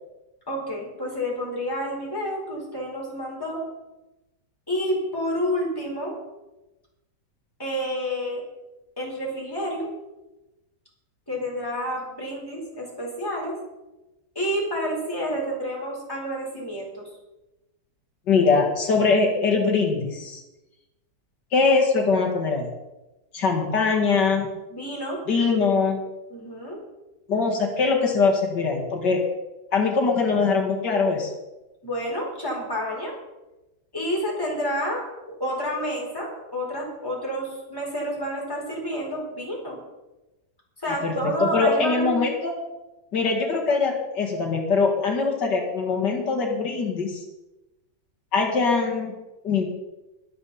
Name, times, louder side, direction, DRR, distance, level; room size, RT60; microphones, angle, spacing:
voice 1, 0.5-3.6 4.7-6.1 7.6-8.4 9.0-9.9 11.3-13.6 14.3-17.1 24.7-25.2 26.3-26.8 31.8-33.1 33.9-39.8 40.8-42.2, equal, 10° left, -3 dB, 4.4 m, -29 dB
voice 2, 18.3-20.4 21.5-22.6 23.3-24.5 25.3-26.0 27.3-29.2 29.7-31.3 40.9-42.5 43.1-47.2 48.3-49.2 49.4-49.6, left 4 dB, 80° left, 0 dB, 2.5 m, -22 dB
21.5 x 8.5 x 4.2 m, 1.0 s
omnidirectional pair, 1.8 m